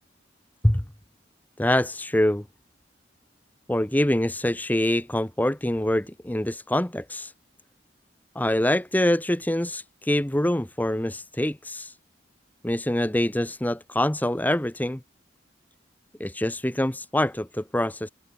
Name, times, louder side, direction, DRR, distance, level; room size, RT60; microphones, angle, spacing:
voice 1, 1.6-2.4 3.7-7.3 8.3-11.9 12.6-15.0 16.2-18.1, left 1 dB, 10° left, 0.8 m, -25 dB
head